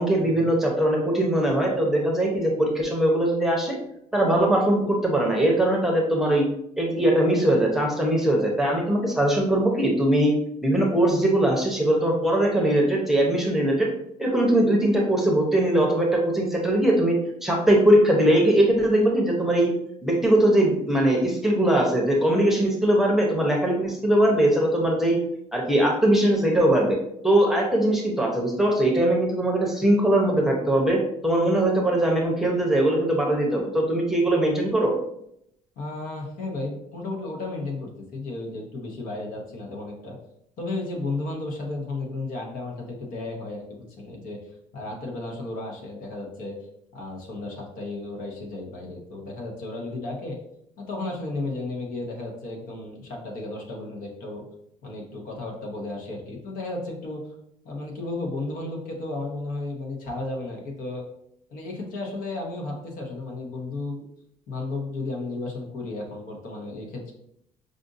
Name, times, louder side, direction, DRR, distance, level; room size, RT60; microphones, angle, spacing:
voice 1, 0.0-3.8 4.1-6.4 6.8-10.3 10.6-13.9 14.2-17.2 17.4-19.7 20.0-25.2 25.5-27.0 27.2-34.9, right 1 dB, ahead, -1 dB, 0.7 m, -21 dB
voice 2, 35.8-40.2 40.6-46.6 46.9-50.4 50.8-54.4 54.8-57.2 57.6-61.0 61.5-64.0 64.5-67.1, left 2 dB, 70° left, 0 dB, 1.0 m, -33 dB
5.0 x 2.5 x 2.6 m, 0.75 s
cardioid pair, 130°, 15 cm